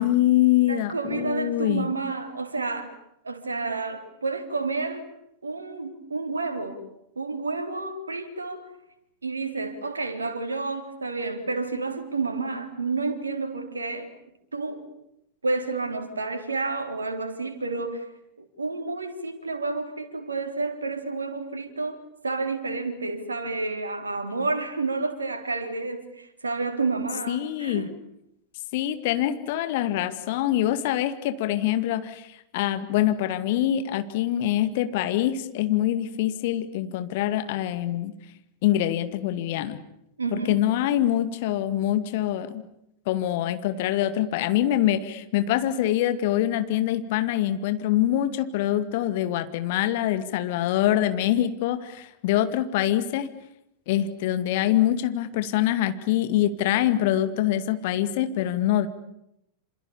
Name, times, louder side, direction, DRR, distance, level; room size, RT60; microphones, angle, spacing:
voice 1, 0.0-1.9 27.3-27.9 28.7-38.1 38.6-39.8 40.3-42.6 43.1-53.3 53.9-58.9, left 12 dB, 50° left, 2.1 m, -24 dB
voice 2, 0.7-2.9 3.2-5.1 5.4-6.8 7.2-8.7 9.2-14.1 14.5-14.9 15.4-18.1 18.4-22.0 22.2-27.9 40.2-40.6, right 3 dB, 75° right, 4.0 m, -30 dB
27.5 x 27.5 x 7.1 m
figure-of-eight pair, 90°, 0 cm